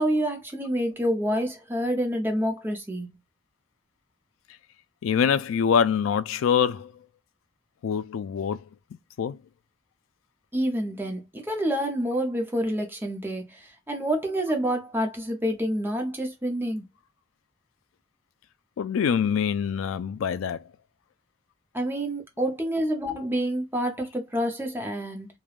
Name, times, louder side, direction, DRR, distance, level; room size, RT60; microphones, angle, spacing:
voice 1, 0.0-3.1 10.5-16.8 21.7-25.3, equal, 10° right, 0.6 m, -28 dB
voice 2, 5.0-6.9 7.8-8.6 9.2-9.4 18.8-20.6, left 7 dB, 85° left, 0.3 m, -24 dB
3.2 x 2.2 x 2.4 m
head